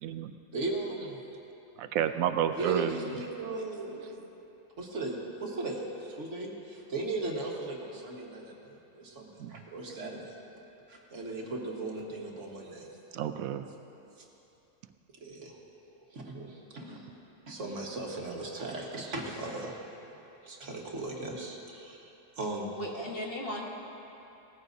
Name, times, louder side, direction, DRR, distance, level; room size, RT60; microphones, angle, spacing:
voice 1, 0.0-0.3 1.8-3.1 9.4-9.6 13.1-13.6, right 9 dB, 85° right, 9 dB, 1.0 m, -30 dB
voice 2, 0.5-1.2 2.6-4.0 4.8-10.4 10.9-12.9 15.2-17.1 17.5-19.8 20.4-22.8, right 2 dB, 60° right, -1 dB, 1.7 m, -37 dB
voice 3, 4.0-4.3 22.8-23.7, equal, 45° left, -2 dB, 1.6 m, -37 dB
18.0 x 14.0 x 2.7 m, 2.9 s
omnidirectional pair, 1.4 m